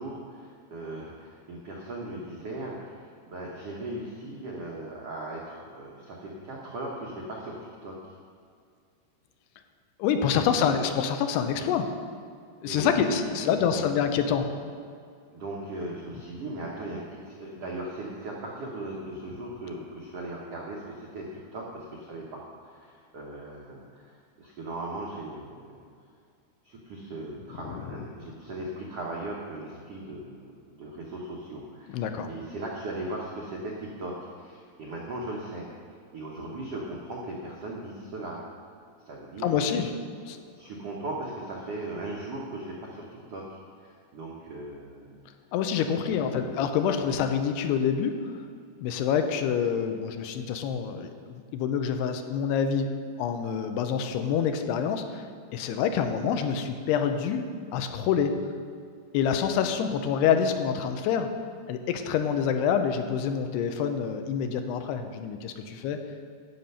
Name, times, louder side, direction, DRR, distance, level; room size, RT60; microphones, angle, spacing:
voice 1, 0.0-8.0 10.4-10.9 12.6-13.9 15.3-25.8 26.6-30.4 30.7-35.7 36.1-38.4 39.0-39.7 40.3-45.2, right 1 dB, 80° right, -3 dB, 1.3 m, -38 dB
voice 2, 10.0-11.9 12.6-14.5 27.7-27.8 31.9-32.3 39.4-39.9 40.3-40.4 45.5-48.2 48.8-52.9 53.2-55.2 55.5-57.5 57.7-58.4 59.1-61.3 61.7-66.0, left 7 dB, 85° left, 7 dB, 2.8 m, -27 dB
11.5 x 7.8 x 5.6 m, 2.2 s
omnidirectional pair, 4.7 m